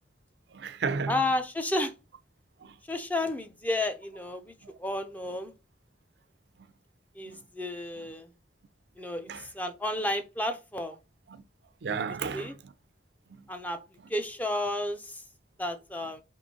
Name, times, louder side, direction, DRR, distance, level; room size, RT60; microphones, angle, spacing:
voice 1, 0.5-1.2 2.6-2.8 7.3-7.4 9.3-9.5 11.3-11.4 11.8-12.7 13.4-13.5, right 5 dB, 75° right, 0.5 m, -33 dB
voice 2, 1.1-1.9 2.9-5.5 7.2-8.3 9.0-11.0 12.3-12.5 13.5-13.8 14.1-15.2 15.6-16.2, left 1 dB, 10° left, 0.5 m, -32 dB
3.8 x 3.1 x 3.7 m
head